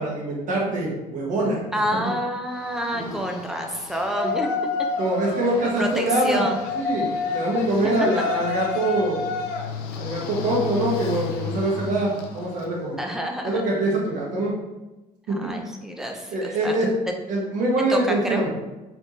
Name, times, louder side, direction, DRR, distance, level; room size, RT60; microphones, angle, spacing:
voice 1, 0.0-1.6 2.9-3.2 4.2-4.3 5.0-6.4 6.7-9.3 9.9-13.0 13.4-14.6 15.3-15.5 16.3-16.9 17.3-18.5, right 1 dB, 55° right, -3 dB, 1.5 m, -24 dB
voice 2, 1.7-4.5 5.8-6.6 7.8-7.9 13.0-13.7 15.3-16.7 17.9-18.4, equal, 5° right, 2 dB, 0.6 m, -28 dB
Yell, 2.5-12.7, left 5 dB, 85° left, 0.6 m, -30 dB
4.6 x 3.6 x 2.8 m, 1.1 s
cardioid pair, 120°, 15 cm